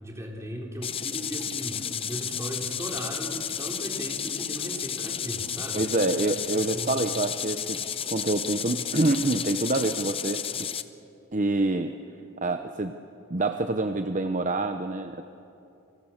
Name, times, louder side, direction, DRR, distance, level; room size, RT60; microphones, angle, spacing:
voice 1, 0.0-5.9 6.7-7.0, equal, 15° right, 0 dB, 3.9 m, -37 dB
sound 1, 0.8-10.8, left 8 dB, 25° left, 0.7 m, -32 dB
voice 2, 5.7-7.8 8.1-10.7 11.3-11.9 12.4-13.0 13.3-15.2, right 2 dB, 35° right, 8 dB, 0.8 m, -26 dB
30.0 x 26.0 x 7.3 m, 2.8 s
head